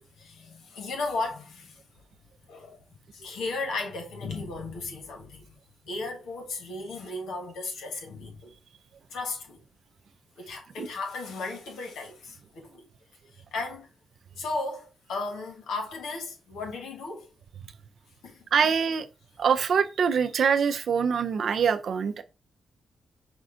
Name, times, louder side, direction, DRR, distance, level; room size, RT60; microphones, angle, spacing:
voice 1, 0.1-1.8 2.5-2.8 3.1-5.6 5.8-8.5 9.1-9.6 10.4-12.8 13.3-13.9 14.4-17.3 18.2-18.5, left 3 dB, 85° left, 1.2 m, -35 dB
voice 2, 18.5-19.1 19.4-22.2, right 6 dB, 65° right, 0.5 m, -24 dB
5.2 x 2.3 x 3.7 m
cardioid pair, 65°, 0 cm